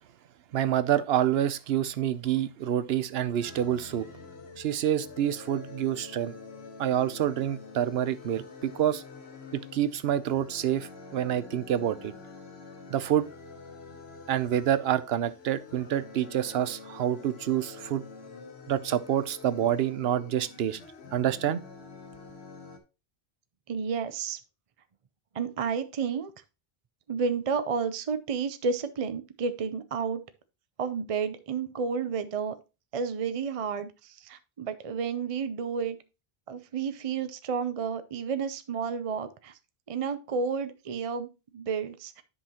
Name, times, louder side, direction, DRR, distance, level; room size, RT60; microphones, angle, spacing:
voice 1, 0.5-4.1 4.6-6.3 6.8-9.0 9.5-12.1 12.9-13.3 14.3-18.0 18.7-20.8 21.1-21.6, right 10 dB, 75° right, 0.9 m, -27 dB
sound 1, 3.4-22.8, left 4 dB, 85° left, 1.3 m, -47 dB
voice 2, 23.7-24.4 25.3-26.3 27.1-30.2 30.8-32.6 32.9-36.0 36.5-39.6 39.9-42.2, right 5 dB, 40° right, 0.6 m, -31 dB
9.9 x 5.6 x 2.9 m
omnidirectional pair, 1.0 m